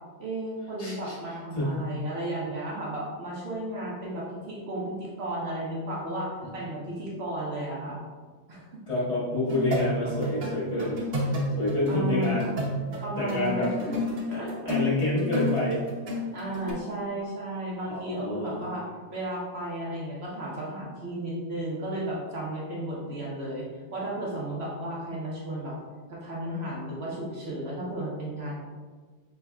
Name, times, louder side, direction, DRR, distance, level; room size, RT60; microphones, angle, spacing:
voice 1, 0.2-8.0 8.5-8.8 11.9-12.4 13.0-14.0 14.3-14.8 16.3-18.8 19.1-23.7 23.9-25.7 26.1-28.6, right 1 dB, 65° right, -5 dB, 0.6 m, -34 dB
voice 2, 0.8-1.1 1.5-1.8 8.9-11.0 11.6-12.5 13.2-13.7 14.7-15.8 17.9-18.5, left 1 dB, 20° left, -7 dB, 1.4 m, -27 dB
sound 1, 9.5-16.7, left 1 dB, 50° right, 1.2 m, -31 dB
5.9 x 3.2 x 2.3 m, 1.4 s
omnidirectional pair, 2.2 m